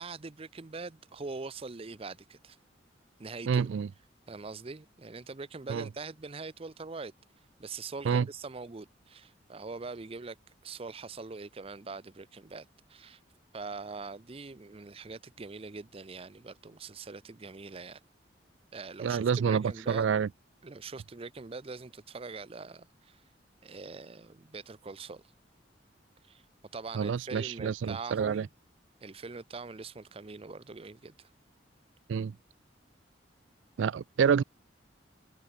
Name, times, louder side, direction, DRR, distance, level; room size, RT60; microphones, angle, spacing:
voice 1, 0.0-2.6 3.2-3.7 4.3-7.1 7.6-10.4 10.6-13.2 13.5-18.0 18.7-20.1 20.6-23.2 23.6-25.2 26.3-26.4 26.7-28.5 29.0-31.3, right 4 dB, 30° right, 0.6 m, -43 dB
voice 2, 3.5-3.9 5.7-5.9 8.0-8.3 19.0-20.3 26.9-28.5 32.1-32.3 33.8-34.4, right 6 dB, 85° right, 0.4 m, -28 dB
head